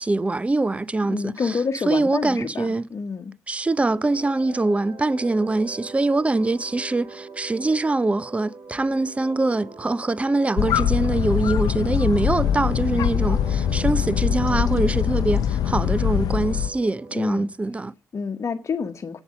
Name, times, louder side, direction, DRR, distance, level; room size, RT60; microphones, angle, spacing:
voice 1, 0.0-1.6 1.9-2.9 3.5-17.9, right 2 dB, 20° right, 0.6 m, -23 dB
voice 2, 1.0-3.3 17.1-17.5 18.1-19.2, left 5 dB, 50° left, 1.2 m, -28 dB
sound 1, 3.9-17.3, right 3 dB, 55° right, 3.4 m, -42 dB
sound 2, 10.6-16.7, left 9 dB, 90° left, 0.6 m, -23 dB
9.1 x 7.9 x 6.3 m
cardioid pair, 65°, 6 cm